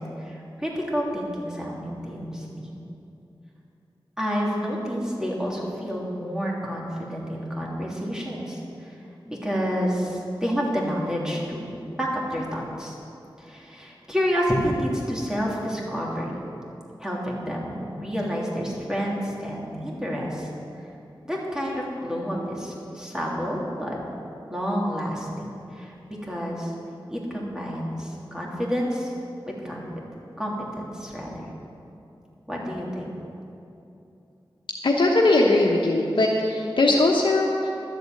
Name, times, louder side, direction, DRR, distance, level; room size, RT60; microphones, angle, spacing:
voice 1, 0.0-2.8 4.2-9.0 9.2-12.9 13.4-16.3 17.0-20.5 21.2-24.0 24.5-26.7 27.1-29.1 29.5-29.9 30.4-31.4 32.5-33.1, equal, 5° right, -4 dB, 3.1 m, -29 dB
voice 2, 34.8-37.7, left 2 dB, 70° left, -2 dB, 1.1 m, -20 dB
12.5 x 8.0 x 7.9 m, 2.8 s
wide cardioid pair, 60°, 9 cm